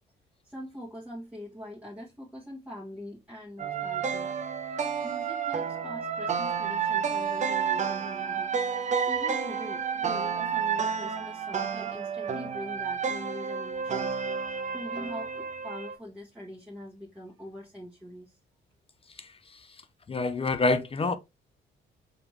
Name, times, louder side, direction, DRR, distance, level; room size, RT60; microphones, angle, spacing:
voice 1, 0.4-4.4 5.0-18.4, equal, 5° right, 1.7 m, -43 dB
sound 1, 3.6-15.9, right 6 dB, 35° right, 0.8 m, -30 dB
voice 2, 19.2-19.7 20.1-21.2, left 3 dB, 30° left, 0.7 m, -27 dB
5.0 x 3.4 x 3.2 m
cardioid pair, 90°, 20 cm